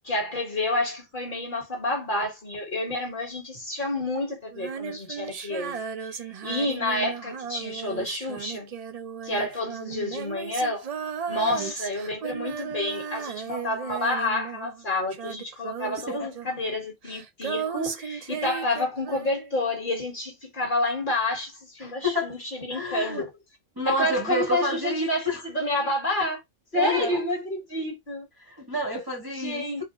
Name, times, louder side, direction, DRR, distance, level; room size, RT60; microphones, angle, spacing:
voice 1, 0.0-5.8 6.1-8.7 9.2-10.9 11.3-23.3 23.8-26.4 26.7-28.3 29.3-29.8, left 2 dB, 40° left, 1.6 m, -29 dB
Female singing, 4.5-14.8 15.1-19.6, right 7 dB, 80° right, 0.3 m, -35 dB
voice 2, 11.3-11.7 16.1-16.3 21.8-22.4 22.7-23.3 23.8-25.4 26.7-27.2 28.4-29.8, left 1 dB, 25° right, 0.5 m, -29 dB
4.2 x 2.0 x 3.7 m
omnidirectional pair, 1.3 m